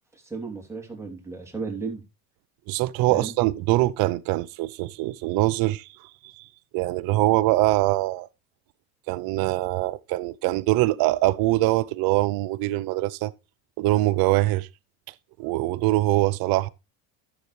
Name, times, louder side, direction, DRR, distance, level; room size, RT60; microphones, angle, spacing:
voice 1, 0.1-2.0 3.1-3.3, right 4 dB, 5° right, 3.1 m, -34 dB
voice 2, 2.7-5.9 6.4-6.5 6.7-8.3 9.1-13.3 13.8-14.7 15.4-16.7, right 18 dB, 55° right, 0.7 m, -23 dB
11.5 x 7.1 x 3.2 m
supercardioid pair, 125°, 42 cm